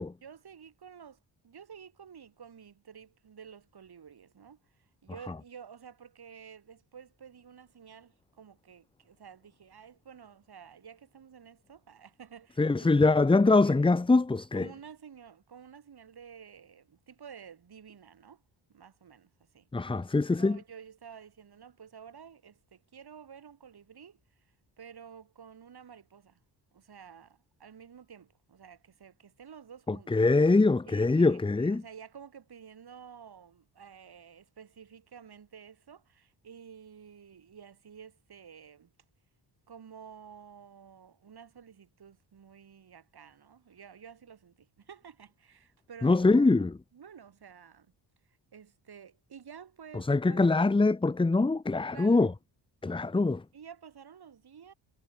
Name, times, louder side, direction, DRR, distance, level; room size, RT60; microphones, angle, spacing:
voice 1, 0.2-13.8 14.5-18.4 18.7-19.7 20.3-26.4 26.7-30.1 30.9-38.9 39.7-46.7 46.9-47.9 48.2-50.5 51.9-52.3 53.5-54.7, right 7 dB, 55° right, 6.6 m, -51 dB
voice 2, 12.6-14.7 19.7-20.6 29.9-31.8 46.0-46.7 49.9-52.3 52.8-53.4, left 3 dB, 10° left, 0.7 m, -23 dB
cardioid pair, 100°, 46 cm